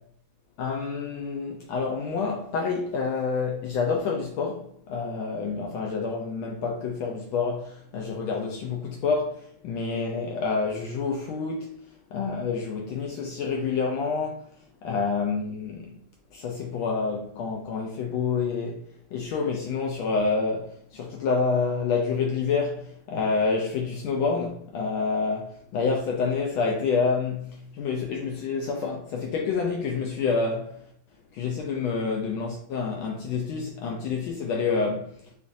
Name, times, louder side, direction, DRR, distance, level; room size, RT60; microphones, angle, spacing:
voice 1, 0.6-11.7 12.1-14.4 14.8-16.0 16.3-18.8 19.1-30.8 31.3-35.2, left 4 dB, 75° left, 1.3 m, -28 dB
5.0 x 2.5 x 2.6 m
omnidirectional pair, 2.4 m